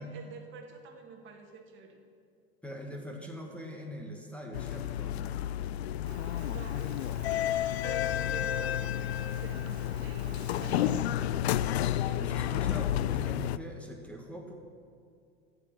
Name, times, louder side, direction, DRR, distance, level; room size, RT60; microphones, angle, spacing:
voice 1, 0.0-2.0 6.4-6.9 7.8-11.8, right 5 dB, 35° right, 3 dB, 1.6 m, -47 dB
voice 2, 2.6-5.2 12.2-14.5, equal, 5° left, 0 dB, 1.5 m, -42 dB
sound 1, 4.5-13.6, left 11 dB, 75° left, 0.5 m, -31 dB
Rain, 6.0-11.0, right 5 dB, 80° right, 1.3 m, -50 dB
15.0 x 5.3 x 7.4 m, 2.3 s
hypercardioid pair, 95°, 32 cm